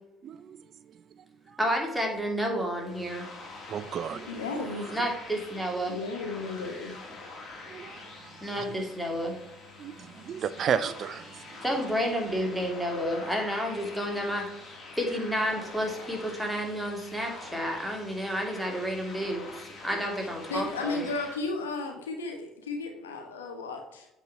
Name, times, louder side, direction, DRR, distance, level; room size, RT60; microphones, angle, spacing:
voice 1, 0.2-0.6 1.5-1.6 3.7-4.3 7.7-8.6 9.8-11.6, right 8 dB, 50° right, 14 dB, 0.4 m, -33 dB
voice 2, 1.6-3.3 4.9-6.0 8.4-9.4 11.6-21.0, equal, ahead, 0 dB, 2.4 m, -31 dB
sound 1, 2.8-21.4, left 3 dB, 40° left, 2.4 m, -45 dB
voice 3, 4.3-4.9 5.9-7.0 20.5-24.1, left 3 dB, 85° left, 4 dB, 1.1 m, -34 dB
8.0 x 4.3 x 4.7 m, 0.90 s
hypercardioid pair, 60°, 0 cm